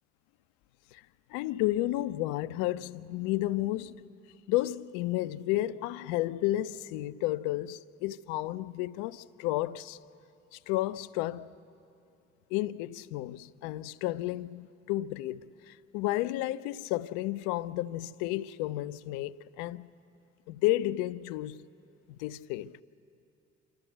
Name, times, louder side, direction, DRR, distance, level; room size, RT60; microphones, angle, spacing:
voice 1, 1.3-4.0 4.5-10.0 10.5-11.5 12.5-15.4 15.7-19.9 20.5-21.6 22.1-22.7, left 16 dB, 60° left, 0.5 m, -32 dB
27.0 x 12.5 x 8.0 m
figure-of-eight pair, 50°, 36 cm